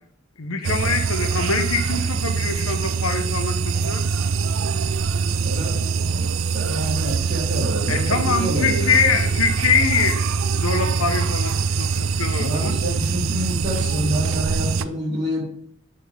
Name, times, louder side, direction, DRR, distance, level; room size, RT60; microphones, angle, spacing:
voice 1, 0.4-4.1 7.9-10.2 10.6-12.8, left 5 dB, 85° left, 7 dB, 0.9 m, -24 dB
sound 1, 0.6-14.9, right 5 dB, 65° right, 0.3 m, -23 dB
voice 2, 5.3-9.1 12.3-15.4, equal, 35° right, -5 dB, 3.1 m, -28 dB
8.8 x 4.2 x 3.5 m, 0.66 s
head